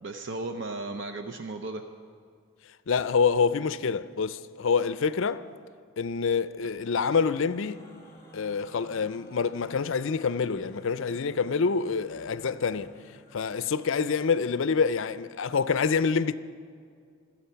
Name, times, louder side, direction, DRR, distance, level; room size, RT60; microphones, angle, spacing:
voice 1, 0.0-1.8, right 2 dB, 55° right, 0.7 m, -35 dB
voice 2, 2.9-5.4 6.0-7.8 8.3-12.9 13.3-16.4, left 5 dB, 65° left, 0.5 m, -26 dB
sound 1, 7.0-14.3, equal, 15° left, 2.3 m, -53 dB
25.0 x 8.7 x 5.7 m
head